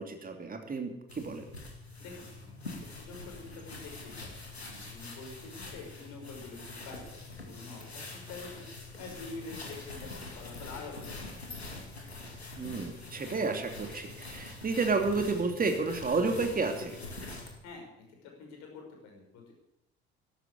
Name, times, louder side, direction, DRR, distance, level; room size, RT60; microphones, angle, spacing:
voice 1, 0.0-1.4 12.6-17.0, right 4 dB, 30° right, 5 dB, 2.8 m, -31 dB
sound 1, 1.1-17.6, left 2 dB, 90° left, 2.2 m, -44 dB
voice 2, 2.0-7.2 7.5-8.7 9.0-11.3 17.6-19.5, left 3 dB, 60° left, 1 dB, 5.7 m, -47 dB
13.0 x 12.5 x 8.3 m, 0.83 s
figure-of-eight pair, 55°, 31 cm